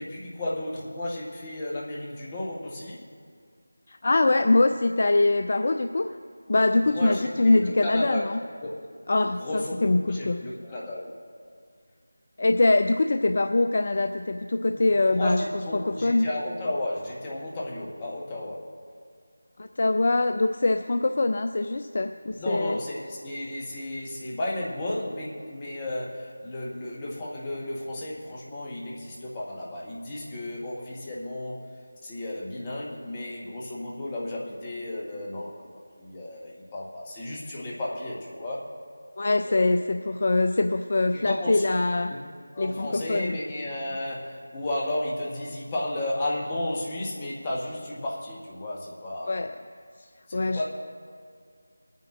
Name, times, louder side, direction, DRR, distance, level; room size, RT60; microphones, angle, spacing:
voice 1, 0.0-3.0 6.8-8.3 8.6-8.8 9.4-11.2 14.8-18.7 22.4-31.6 32.0-38.6 39.5-39.9 41.1-41.6 42.1-42.2 42.5-49.4 50.3-50.6, left 1 dB, 20° left, -4 dB, 1.3 m, -33 dB
voice 2, 3.9-6.1 6.5-8.4 9.1-10.4 12.4-15.4 15.7-16.3 19.6-22.8 39.2-42.2 42.6-43.4 49.3-49.6 50.3-50.6, left 2 dB, 45° left, 8 dB, 0.3 m, -23 dB
26.5 x 9.3 x 2.5 m, 2.2 s
figure-of-eight pair, 165°, 0 cm